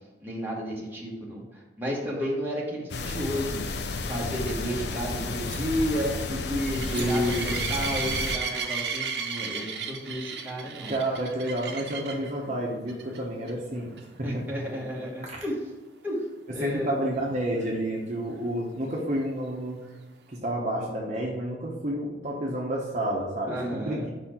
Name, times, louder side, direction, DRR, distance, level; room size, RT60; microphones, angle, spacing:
voice 1, 0.2-3.6 4.1-10.9 12.1-12.2 14.2-15.6 16.0-16.2 16.5-17.0 23.5-24.1, equal, 10° right, -4 dB, 1.3 m, -32 dB
sound 1, 2.9-8.4, left 3 dB, 65° left, 0.5 m, -32 dB
sound 2, 4.4-12.3 12.9-13.2 13.5-13.6 14.0-14.1 17.6-17.7, right 6 dB, 70° right, 0.7 m, -34 dB
sound 3, 5.4-5.6 6.8-7.1, equal, 5° left, 1.2 m, -45 dB
voice 2, 6.9-7.5 10.9-14.4 15.2-15.4 16.5-19.8 20.3-24.1, right 1 dB, 40° right, -2 dB, 0.9 m, -30 dB
5.1 x 4.2 x 5.8 m, 1.2 s
head